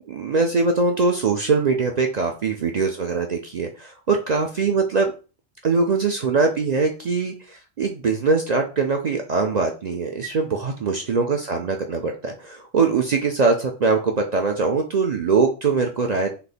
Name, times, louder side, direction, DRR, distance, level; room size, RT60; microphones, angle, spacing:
voice 1, 0.1-5.1 5.6-16.3, right 4 dB, 55° right, 3 dB, 0.4 m, -22 dB
3.5 x 2.8 x 4.0 m, 0.33 s
omnidirectional pair, 1.3 m